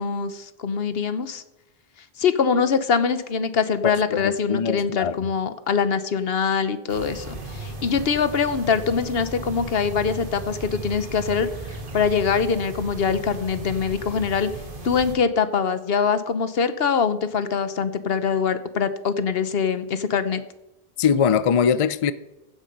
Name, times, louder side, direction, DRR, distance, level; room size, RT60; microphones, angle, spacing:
voice 1, 0.0-1.4 2.2-11.5 11.9-14.5 14.8-20.4, left 6 dB, 70° left, 1.1 m, -23 dB
voice 2, 4.1-5.1 21.0-22.1, left 7 dB, 50° left, 0.4 m, -21 dB
sound 1, 6.9-15.2, right 2 dB, 55° right, 1.9 m, -36 dB
15.0 x 7.4 x 5.3 m
omnidirectional pair, 1.1 m